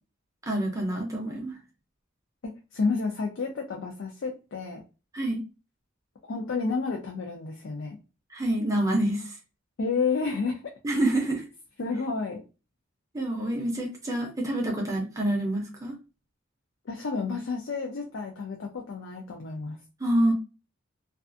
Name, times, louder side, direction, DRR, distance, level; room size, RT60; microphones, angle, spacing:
voice 1, 0.4-1.6 5.1-5.4 8.3-9.3 10.8-11.5 13.1-16.0 20.0-20.3, right 1 dB, 15° right, -1 dB, 0.5 m, -27 dB
voice 2, 2.4-4.8 6.2-8.0 9.8-11.0 11.8-12.4 16.9-19.8, left 4 dB, 65° left, 1 dB, 0.4 m, -31 dB
2.4 x 2.4 x 2.5 m, 0.31 s
head